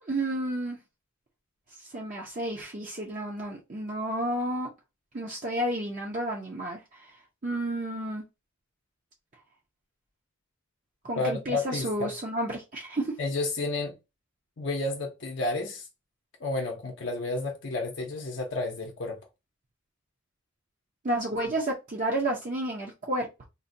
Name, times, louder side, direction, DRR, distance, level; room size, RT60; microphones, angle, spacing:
voice 1, 0.0-0.8 1.9-4.7 5.1-6.8 7.4-8.2 11.0-13.1 21.0-23.4, right 1 dB, 35° right, 0.5 m, -31 dB
voice 2, 11.2-12.1 13.2-13.9 14.6-15.9 16.4-19.2, left 2 dB, 60° left, 0.6 m, -31 dB
3.8 x 2.2 x 2.6 m
head